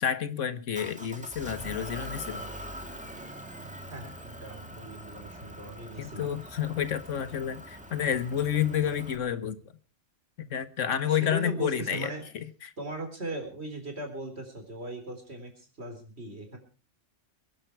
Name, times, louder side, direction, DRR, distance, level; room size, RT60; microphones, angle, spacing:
voice 1, 0.0-2.4 6.0-9.6 10.4-12.1 12.6-12.7, left 9 dB, 80° left, 13 dB, 1.4 m, -29 dB
Motor vehicle (road) / Engine, 0.7-9.2, equal, 5° right, 2.2 m, -43 dB
voice 2, 3.9-6.3 10.9-12.3 12.8-16.6, right 2 dB, 60° right, 5 dB, 4.3 m, -39 dB
22.5 x 11.0 x 4.6 m, 0.37 s
omnidirectional pair, 1.3 m